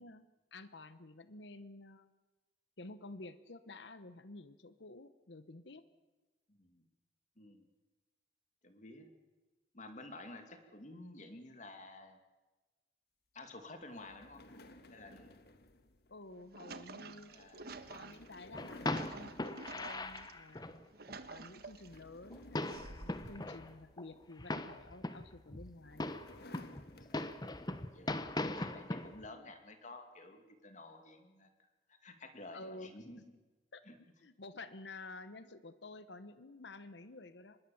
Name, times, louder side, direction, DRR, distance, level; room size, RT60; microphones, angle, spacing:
voice 1, 0.0-2.1 2.8-5.8 16.1-20.8 21.3-26.1 32.5-32.9 33.7-33.8 34.2-37.6, left 2 dB, 80° left, 13 dB, 1.1 m, -51 dB
voice 2, 6.5-6.8 7.4-7.7 8.6-9.1 9.7-12.2 13.3-14.4 14.9-15.3 17.3-18.0 27.9-31.5 31.9-33.2 33.9-34.0, left 2 dB, 45° left, 6 dB, 2.6 m, -52 dB
sound 1, 13.9-20.5 20.8-21.1 21.5-24.5 25.4-27.8, left 1 dB, 60° left, 1.7 m, -58 dB
sound 2, 16.2-20.3 20.8-22.0 22.7-23.4, right 3 dB, 60° right, 1.4 m, -50 dB
sound 3, 18.5-20.8 21.1-21.2 21.4-21.5 21.9-22.0 22.3-23.7 24.0-24.1 24.4-25.8 26.0-29.3, left 2 dB, 25° left, 1.1 m, -40 dB
25.0 x 21.0 x 7.2 m, 1.2 s
head